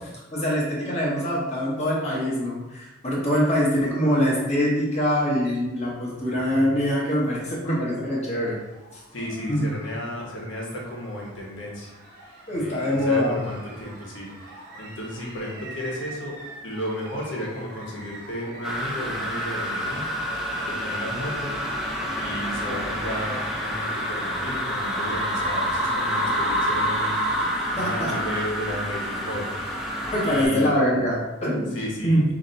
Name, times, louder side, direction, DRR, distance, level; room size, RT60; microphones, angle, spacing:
voice 1, 0.0-8.6 8.9-9.0 9.5-9.7 12.5-13.4 27.8-28.1 30.1-32.2, equal, 35° left, -5 dB, 1.0 m, -24 dB
sound 1, 7.6-27.5, right 2 dB, 50° right, 0.9 m, -44 dB
voice 2, 9.1-11.9 12.5-16.3 16.6-20.1 20.6-21.6 22.1-27.2 27.7-29.5 30.2-30.7 31.7-32.2, equal, 70° left, -3 dB, 1.2 m, -33 dB
sound 2, 18.6-30.5, equal, ahead, 0.5 m, -28 dB
4.2 x 2.9 x 3.9 m, 1.1 s
head